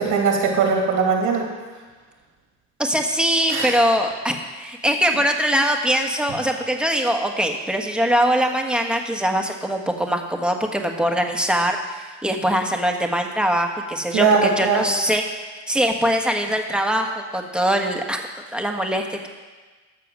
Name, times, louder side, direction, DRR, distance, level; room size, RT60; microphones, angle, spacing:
voice 1, 0.0-1.4 3.5-3.8 14.1-14.9, right 5 dB, 90° right, 0 dB, 2.6 m, -20 dB
voice 2, 2.8-15.2 15.7-17.1 17.3-18.2 18.5-19.3, equal, 5° right, 3 dB, 1.4 m, -22 dB
13.0 x 6.8 x 6.2 m, 1.3 s
cardioid pair, 90°, 30 cm